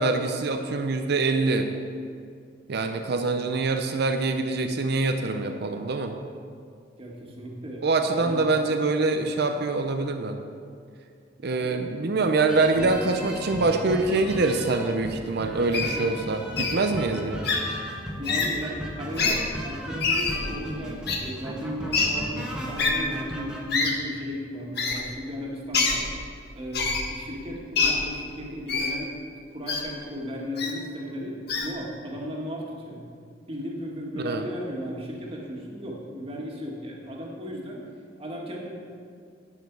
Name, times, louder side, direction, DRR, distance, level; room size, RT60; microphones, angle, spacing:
voice 1, 0.0-1.7 2.7-6.2 7.8-10.4 11.4-17.5 24.9-25.0 34.2-34.4, right 3 dB, 60° right, 6 dB, 0.6 m, -25 dB
voice 2, 7.0-9.3 11.4-11.9 15.7-16.1 18.2-26.1 26.5-29.2 29.5-33.0 33.5-37.8 38.2-38.7, equal, 30° right, -2 dB, 1.8 m, -36 dB
sound 1, 12.5-23.6, equal, 5° right, 1.3 m, -36 dB
Wild animals, 15.7-15.9 16.6-16.7 17.4-17.6 18.2-18.5 19.1-19.4 20.0-20.4 21.1-21.2 21.9-22.1 22.8-22.9 23.7-23.9 24.8-25.0 25.7-26.0 26.7-27.0 27.8-27.9 28.7-28.9 29.7-29.8 30.6-30.7 31.5-31.7, left 4 dB, 60° left, 1.5 m, -24 dB
10.5 x 9.0 x 4.7 m, 2.2 s
head